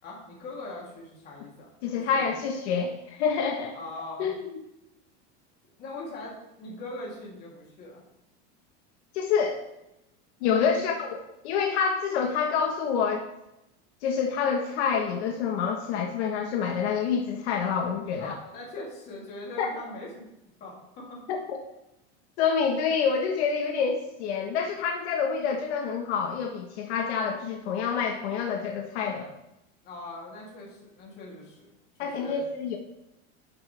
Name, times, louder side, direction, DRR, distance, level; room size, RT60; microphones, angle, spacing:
voice 1, 0.0-2.3 3.7-4.3 5.8-8.0 18.2-20.1 20.4-21.2 29.8-31.7 32.0-32.4, left 2 dB, 30° left, -4 dB, 3.0 m, -41 dB
voice 2, 1.8-3.7 4.2-4.4 9.1-9.6 10.4-11.2 11.4-13.3 14.0-18.3 19.6-19.7 21.3-21.6 22.4-29.3 32.0-32.8, left 6 dB, 70° left, 2 dB, 1.4 m, -27 dB
11.0 x 8.1 x 3.4 m, 0.88 s
supercardioid pair, 175°, 34 cm